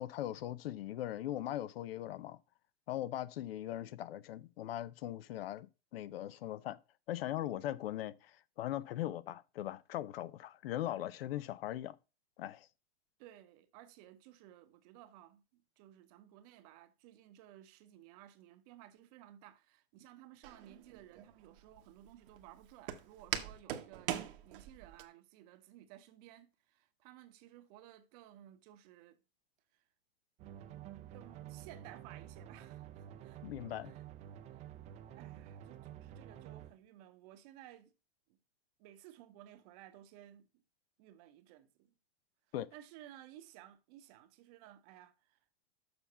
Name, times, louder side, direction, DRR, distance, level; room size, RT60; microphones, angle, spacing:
voice 1, 0.0-2.4 2.9-5.7 5.9-6.8 7.1-8.3 8.6-12.0 12.4-12.7 33.4-33.9 42.5-42.7, left 13 dB, 70° left, 0.7 m, -40 dB
voice 2, 13.2-24.2 24.4-29.2 31.1-33.4 33.8-34.0 34.5-34.7 35.1-37.9 38.3-38.4 38.8-40.5 41.0-41.9 42.7-45.4, right 12 dB, 40° right, 0.9 m, -57 dB
Walk footsteps, 20.4-25.0, right 11 dB, 60° right, 1.1 m, -42 dB
sound 1, 30.4-36.7, right 11 dB, 20° right, 0.5 m, -50 dB
6.9 x 5.7 x 5.5 m
supercardioid pair, 155°, 31 cm